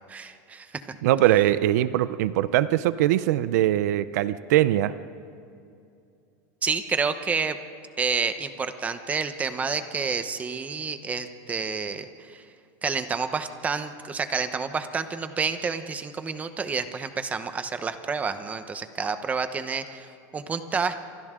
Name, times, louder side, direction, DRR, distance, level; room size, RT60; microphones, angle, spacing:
voice 1, 0.1-0.8 6.6-7.6 8.0-12.4 12.8-20.9, right 5 dB, 15° right, 10 dB, 1.0 m, -29 dB
voice 2, 1.0-4.9, right 13 dB, 80° right, 15 dB, 0.7 m, -22 dB
28.5 x 24.5 x 3.8 m, 2.5 s
supercardioid pair, 155°, 9 cm